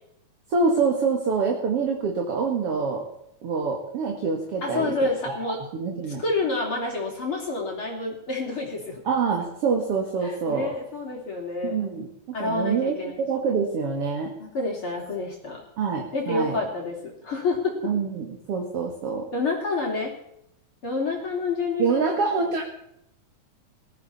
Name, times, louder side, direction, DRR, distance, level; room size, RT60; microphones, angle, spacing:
voice 1, 0.5-3.0 3.4-6.2 9.0-10.7 11.6-12.1 12.4-14.3 15.8-16.6 17.8-19.3 21.8-22.6, right 5 dB, 50° right, 1 dB, 2.8 m, -26 dB
voice 2, 4.6-5.6 6.2-9.0 10.2-11.8 12.3-13.3 14.4-15.6 16.1-17.8 19.3-20.1 20.8-22.1, left 3 dB, 45° left, -1 dB, 3.9 m, -28 dB
20.5 x 13.5 x 4.3 m, 0.76 s
omnidirectional pair, 3.5 m